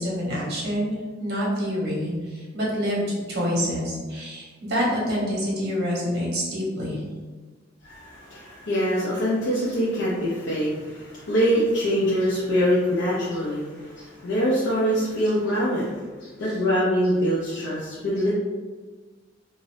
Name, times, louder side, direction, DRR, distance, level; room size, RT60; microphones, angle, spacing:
voice 1, 0.0-2.1 2.5-7.0, equal, 55° right, -5 dB, 1.0 m, -26 dB
voice 2, 7.8-15.9 16.2-18.3, equal, 70° left, -8 dB, 0.6 m, -24 dB
2.6 x 2.5 x 3.2 m, 1.4 s
head